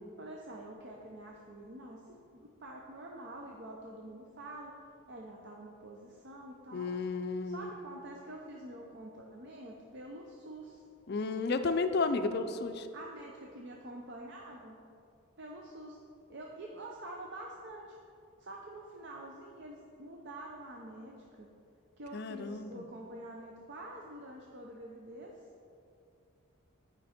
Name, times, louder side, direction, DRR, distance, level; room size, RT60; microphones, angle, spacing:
voice 1, 0.2-4.7 5.1-7.0 7.4-10.8 12.9-14.8 15.4-16.0 16.3-18.0 18.4-21.5 22.0-25.4, right 1 dB, 50° right, -1 dB, 0.6 m, -47 dB
voice 2, 6.7-7.7 11.1-12.9 22.1-22.8, left 3 dB, 45° left, 9 dB, 0.4 m, -32 dB
10.0 x 5.2 x 4.3 m, 2.5 s
head